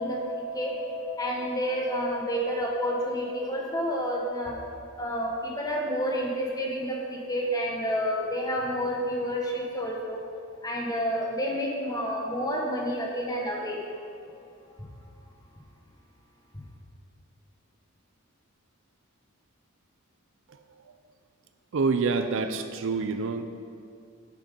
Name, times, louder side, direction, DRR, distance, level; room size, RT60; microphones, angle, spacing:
voice 1, 0.0-10.2 10.6-14.0, equal, 15° left, -2 dB, 1.3 m, -29 dB
voice 2, 21.7-23.5, right 4 dB, 60° right, 8 dB, 0.4 m, -27 dB
8.6 x 6.1 x 5.3 m, 2.3 s
head